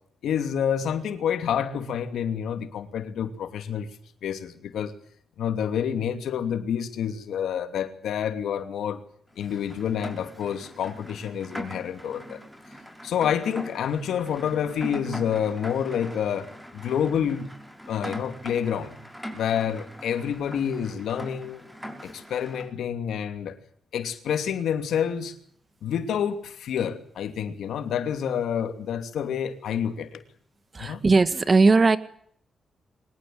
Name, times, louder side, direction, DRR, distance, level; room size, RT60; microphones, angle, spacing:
voice 1, 0.2-3.9 4.2-4.9 5.4-9.0 9.4-12.4 13.0-17.5 17.9-19.0 19.3-21.6 22.0-23.6 23.9-25.4 25.8-30.2 30.8-31.0, left 8 dB, 90° left, 2.7 m, -28 dB
Rain, 9.4-22.7, equal, ahead, 5.6 m, -41 dB
voice 2, 30.7-32.0, right 3 dB, 35° right, 2.0 m, -18 dB
23.5 x 20.5 x 7.8 m
cardioid pair, 80°, 0 cm